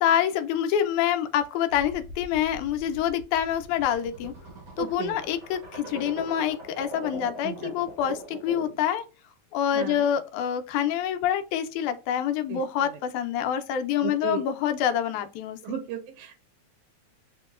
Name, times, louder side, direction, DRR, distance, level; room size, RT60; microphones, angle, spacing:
voice 1, 0.0-4.3 4.8-9.0 9.5-15.6, left 9 dB, 90° left, 8 dB, 2.0 m, -26 dB
sound 1, 1.7-8.9, right 1 dB, 70° right, 1.0 m, -42 dB
voice 2, 4.8-5.2 7.2-7.7 9.7-10.1 12.5-13.0 14.0-14.4 15.6-16.4, right 9 dB, 90° right, 5 dB, 2.0 m, -35 dB
5.4 x 2.9 x 2.3 m, 0.31 s
omnidirectional pair, 3.4 m